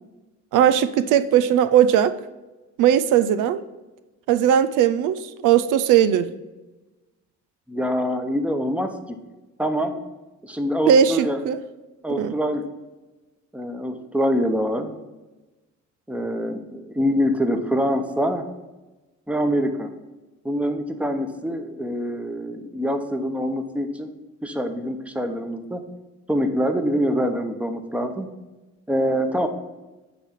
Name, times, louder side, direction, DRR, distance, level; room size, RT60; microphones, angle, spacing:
voice 1, 0.5-2.2 2.8-3.6 4.3-6.3 10.9-11.6 12.1-12.3, right 9 dB, 90° right, 12 dB, 0.5 m, -18 dB
voice 2, 7.7-9.2 9.6-10.0 10.4-11.4 12.0-12.6 13.5-14.9 16.1-18.4 19.3-19.9 20.4-24.1 24.4-25.8 26.3-28.3 28.9-29.5, equal, 5° right, 6 dB, 0.9 m, -25 dB
10.0 x 3.4 x 5.7 m, 1.1 s
cardioid pair, 90°, 30 cm